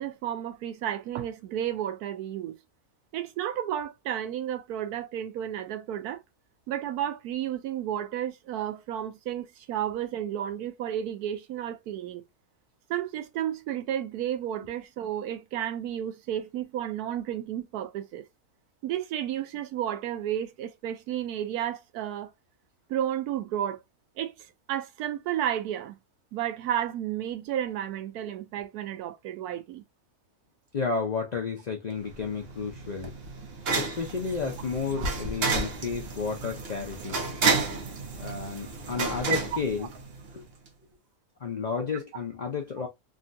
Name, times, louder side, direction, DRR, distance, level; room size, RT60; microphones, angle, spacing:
voice 1, 0.0-2.6 3.1-6.2 6.7-12.2 12.9-18.2 18.8-22.3 22.9-23.8 24.2-26.0 26.3-29.8 35.0-35.1 36.4-36.5 39.8-39.9, right 10 dB, 85° right, 1.1 m, -32 dB
voice 2, 30.7-33.1 33.8-37.2 38.2-39.9 40.3-40.4 41.4-42.9, left 5 dB, 85° left, 0.3 m, -32 dB
sound 1, 32.1-40.4, right 4 dB, 50° right, 0.8 m, -31 dB
3.5 x 2.2 x 2.5 m
omnidirectional pair, 1.6 m